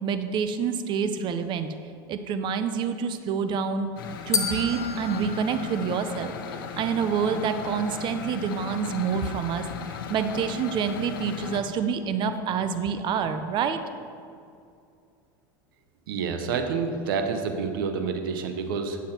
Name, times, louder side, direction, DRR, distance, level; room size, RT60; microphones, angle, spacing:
voice 1, 0.0-1.7 2.1-3.9 4.3-6.3 6.8-9.7 10.1-13.8, right 6 dB, 45° right, 10 dB, 0.7 m, -27 dB
sound 1, 4.0-11.6, left 7 dB, 90° left, 0.7 m, -37 dB
sound 2, 4.3-6.6, left 5 dB, 30° left, 1.0 m, -32 dB
voice 2, 16.1-19.0, right 5 dB, 85° right, 6 dB, 0.9 m, -28 dB
8.8 x 7.2 x 4.4 m, 2.5 s
supercardioid pair, 110°, 11 cm